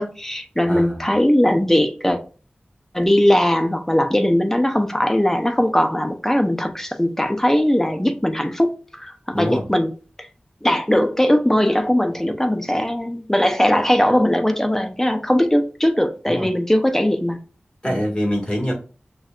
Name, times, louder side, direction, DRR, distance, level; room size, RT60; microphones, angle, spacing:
voice 1, 0.0-2.2 2.9-9.9 10.2-10.3 10.6-17.4 17.9-18.1, left 1 dB, 10° left, 0.6 m, -19 dB
voice 2, 0.7-1.0 9.3-9.6 16.3-16.5 17.8-18.7, equal, 25° left, 1.8 m, -24 dB
6.0 x 2.4 x 2.4 m
wide cardioid pair, 45°, 4 cm